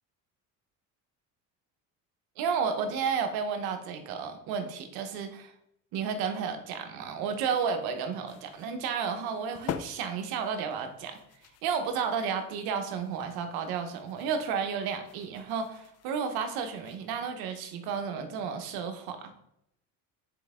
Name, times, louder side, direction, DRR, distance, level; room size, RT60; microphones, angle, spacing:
voice 1, 2.4-5.5 5.9-11.2 11.6-19.3, right 6 dB, 75° right, 6 dB, 1.1 m, -32 dB
sound 1, 8.3-17.2, left 9 dB, 45° left, 0.6 m, -46 dB
9.1 x 4.5 x 3.6 m, 0.79 s
supercardioid pair, 105°, 37 cm